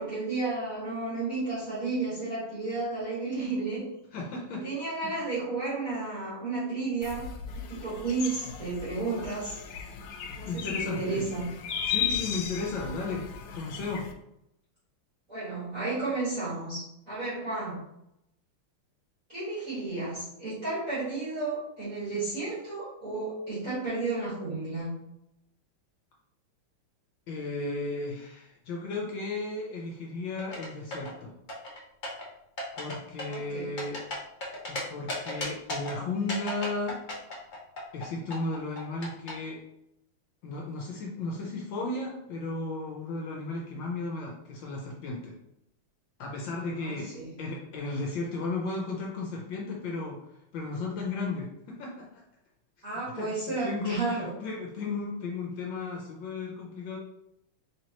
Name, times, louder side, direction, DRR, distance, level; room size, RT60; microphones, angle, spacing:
voice 1, 0.0-3.9 4.6-7.3 7.5-9.5 10.3-11.5 15.3-17.8 19.3-24.9 33.2-33.7 46.7-47.4 52.8-54.3, right 3 dB, 40° right, -12 dB, 2.1 m, -32 dB
voice 2, 4.1-4.6 5.0-5.1 8.9-9.3 10.5-11.3 11.9-13.3 13.5-14.1 27.3-31.3 32.8-34.0 34.7-37.0 37.9-39.6 40.4-45.3 46.2-47.1 47.4-50.2 50.5-52.2 53.2-53.4 53.6-57.0, left 3 dB, 70° left, -1 dB, 1.4 m, -34 dB
sound 1, 7.0-14.1, left 8 dB, 90° left, 1.5 m, -36 dB
sound 2, 30.4-31.1 31.5-32.2 32.6-32.9 33.2-34.8 35.1-35.9 36.3-38.0 38.3-39.3, left 1 dB, 50° left, 0.5 m, -35 dB
4.3 x 3.4 x 2.9 m, 0.81 s
omnidirectional pair, 2.3 m